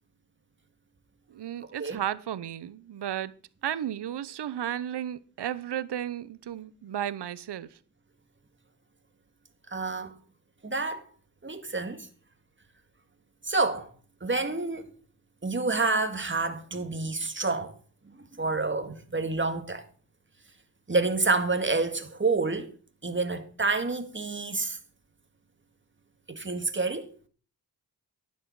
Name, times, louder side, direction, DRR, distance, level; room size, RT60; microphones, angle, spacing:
voice 1, 1.3-3.3 3.6-7.7, right 10 dB, 80° right, 0.8 m, -33 dB
voice 2, 9.7-10.1 10.6-11.0 11.4-12.1 13.4-13.9 14.2-14.9 15.4-17.7 18.4-19.9 20.9-22.7 23.0-24.8 26.3-27.1, right 3 dB, 30° right, 2.0 m, -28 dB
11.5 x 10.5 x 4.8 m
cardioid pair, 55°, 40 cm